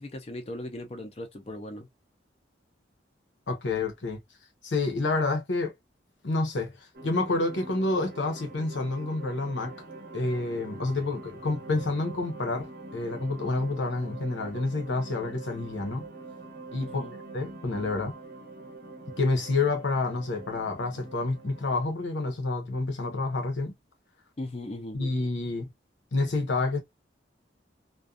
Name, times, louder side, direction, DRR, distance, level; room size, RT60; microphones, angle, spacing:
voice 1, 0.0-1.9 16.8-17.1 24.4-25.0, left 1 dB, 30° left, 0.4 m, -38 dB
voice 2, 3.5-4.2 4.6-5.7 6.2-6.8 7.0-9.7 10.1-16.0 16.7-17.0 17.3-18.1 19.2-23.7 24.9-25.7 26.1-26.8, left 3 dB, 80° left, 0.8 m, -28 dB
sound 1, 6.9-21.9, right 2 dB, 50° right, 0.6 m, -44 dB
2.5 x 2.2 x 2.3 m
head